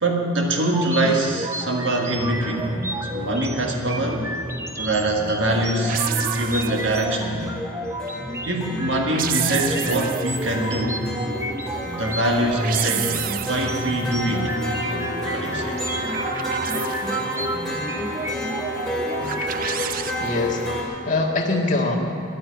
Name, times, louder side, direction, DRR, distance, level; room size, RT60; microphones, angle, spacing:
voice 1, 0.0-2.7 3.1-4.2 4.8-7.4 8.4-11.0 11.9-13.2 13.5-14.5 15.3-15.8, right 1 dB, 75° right, 1 dB, 1.6 m, -23 dB
sound 1, 0.6-19.9, right 1 dB, 15° right, 0.8 m, -32 dB
sound 2, 2.1-20.8, equal, 5° left, 2.3 m, -31 dB
sound 3, 5.9-7.1 8.9-10.5 12.3-13.9 15.8-17.4 19.2-20.1, right 10 dB, 45° right, 0.4 m, -30 dB
voice 2, 20.2-22.0, left 2 dB, 40° left, -1 dB, 1.8 m, -23 dB
11.5 x 8.8 x 9.5 m, 2.6 s
head